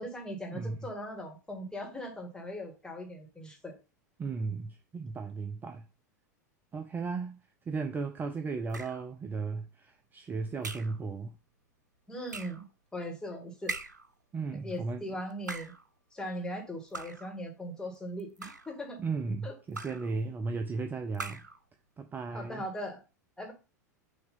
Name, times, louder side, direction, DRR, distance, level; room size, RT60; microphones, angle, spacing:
voice 1, 0.0-3.7 12.1-12.6 12.9-13.7 14.6-15.7 16.1-19.0 19.4-19.5 22.3-23.0 23.4-23.5, equal, 10° left, 2.0 m, -39 dB
voice 2, 4.2-5.9 6.7-7.4 7.7-11.4 14.3-15.0 19.0-21.4 22.0-22.6, right 4 dB, 20° right, 0.5 m, -35 dB
sound 1, 8.7-9.1 10.6-11.0 12.3-12.7 13.7-14.1 15.3-15.9 16.9-17.4 18.2-18.8 19.7-20.1 21.1-21.6, right 3 dB, 85° right, 0.5 m, -41 dB
6.2 x 2.9 x 5.5 m
figure-of-eight pair, 85°, 9 cm